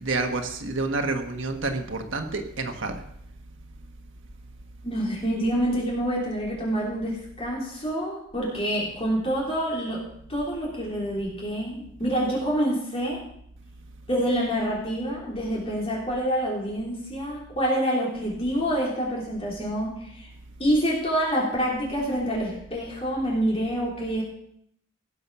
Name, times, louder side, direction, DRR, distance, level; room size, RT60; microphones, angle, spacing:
voice 1, 0.0-3.0, right 3 dB, 65° right, 4 dB, 1.5 m, -28 dB
voice 2, 4.8-10.0 10.3-13.2 14.1-20.3 20.6-24.2, equal, 30° left, -4 dB, 3.6 m, -27 dB
17.0 x 7.0 x 6.1 m, 0.70 s
head